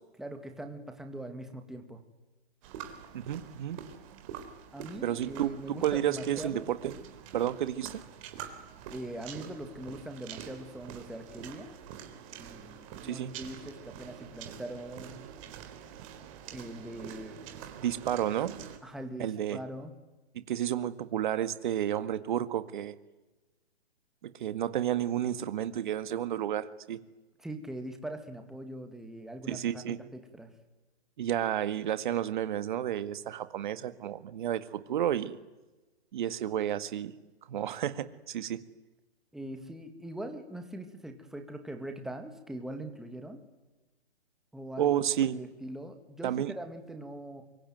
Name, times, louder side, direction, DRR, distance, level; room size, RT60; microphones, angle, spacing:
voice 1, 0.2-2.0 4.7-6.7 8.9-11.7 12.3-15.2 16.5-17.4 18.8-19.9 27.4-30.5 39.3-43.4 44.5-45.0 45.3-47.4, right 1 dB, ahead, 4 dB, 2.2 m, -42 dB
sound 1, 2.6-18.8, right 8 dB, 30° right, 3.9 m, -46 dB
voice 2, 3.1-3.8 5.0-6.9 7.3-8.0 13.0-13.3 17.8-18.5 19.2-19.6 20.3-22.9 24.2-27.0 29.5-30.0 31.2-35.4 36.1-37.1 37.5-38.6 44.8-45.4 46.2-46.5, right 10 dB, 50° right, 12 dB, 1.9 m, -31 dB
25.0 x 23.5 x 9.4 m, 1.1 s
hypercardioid pair, 155°, 33 cm